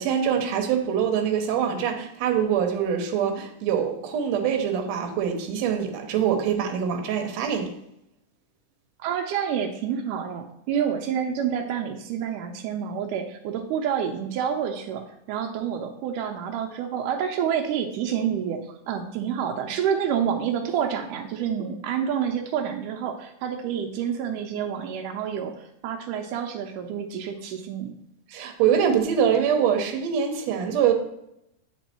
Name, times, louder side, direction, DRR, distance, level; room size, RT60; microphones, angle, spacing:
voice 1, 0.0-7.7 28.3-30.9, right 8 dB, 65° right, 3 dB, 1.9 m, -24 dB
voice 2, 9.0-28.0, right 8 dB, 80° right, 4 dB, 2.1 m, -28 dB
9.2 x 3.7 x 4.2 m, 0.80 s
omnidirectional pair, 3.7 m